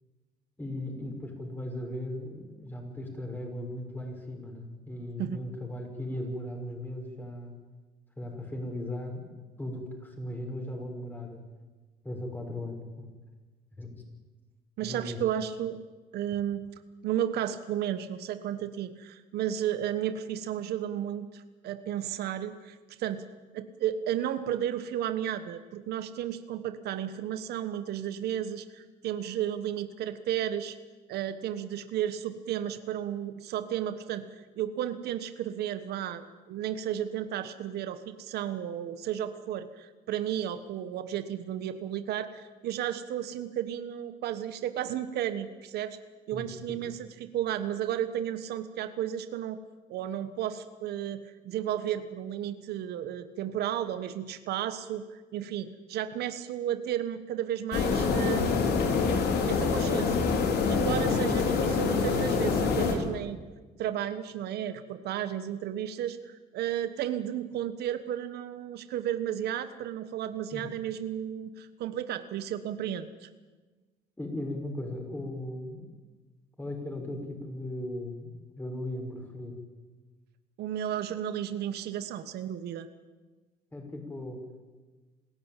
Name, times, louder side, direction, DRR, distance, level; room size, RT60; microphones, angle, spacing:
voice 1, 0.6-7.5 8.2-9.3 9.6-11.4 12.0-13.1 13.8-14.0 14.8-15.2 46.3-46.8 60.9-61.4 70.5-70.7 74.2-75.8 76.6-78.3 78.6-79.6 83.7-84.4, left 1 dB, 10° left, 2 dB, 6.3 m, -37 dB
voice 2, 14.8-15.8 16.1-16.7 17.0-23.2 23.5-30.8 31.1-34.3 34.6-46.0 46.3-49.6 49.9-58.6 59.5-60.3 60.7-63.4 63.8-73.3 80.6-82.9, right 10 dB, 75° right, 11 dB, 1.3 m, -33 dB
sound 1, 57.7-62.9, left 5 dB, 70° left, 4.2 m, -26 dB
27.0 x 14.0 x 9.1 m, 1.3 s
cardioid pair, 110°, 17 cm